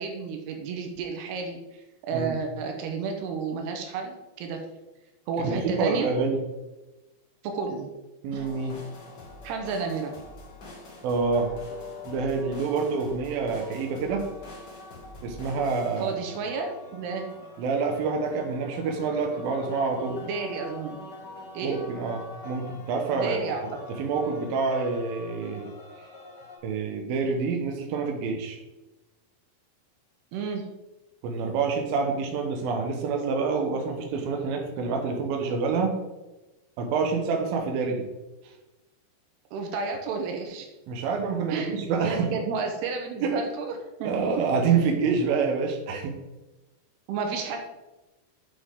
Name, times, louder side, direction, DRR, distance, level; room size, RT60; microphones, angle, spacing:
voice 1, 0.0-1.8 2.1-4.7 5.3-6.1 7.4-7.9 8.3-8.5 9.4-10.1 16.0-17.3 20.2-21.0 21.5-21.8 23.2-23.8 30.3-30.7 39.5-40.7 41.5-41.7 42.0-44.4 47.1-47.6, right 5 dB, 85° right, 3 dB, 3.1 m, -31 dB
voice 2, 5.5-6.4 8.2-8.8 11.0-11.5 12.1-14.2 15.2-16.3 17.6-20.2 21.6-23.4 24.0-25.7 26.6-28.6 31.2-36.0 36.8-38.0 40.9-42.3 43.2-43.4 44.0-46.2, right 4 dB, 70° right, 2 dB, 2.7 m, -27 dB
sound 1, 8.3-26.6, left 2 dB, 70° left, 1.0 m, -44 dB
8.5 x 7.0 x 3.7 m, 1.1 s
omnidirectional pair, 4.6 m